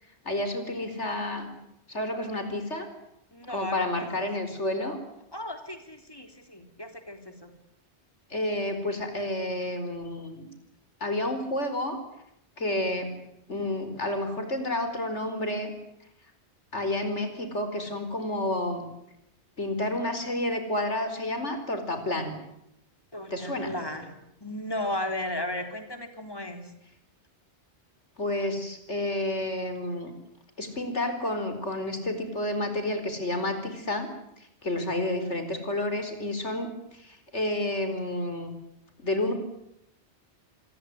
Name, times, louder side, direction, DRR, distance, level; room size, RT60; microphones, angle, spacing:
voice 1, 0.2-1.5 1.9-2.9 3.5-5.0 8.3-10.5 11.0-12.0 12.6-13.1 13.5-15.7 16.7-18.8 19.6-22.4 23.3-23.7 28.2-30.1 30.6-34.1 34.6-36.7 37.0-38.5 39.0-39.3, left 1 dB, 80° left, 8 dB, 5.0 m, -30 dB
voice 2, 3.3-4.3 5.3-7.5 23.1-26.7, left 1 dB, 20° left, 6 dB, 3.8 m, -35 dB
26.5 x 21.0 x 9.6 m, 0.81 s
omnidirectional pair, 1.2 m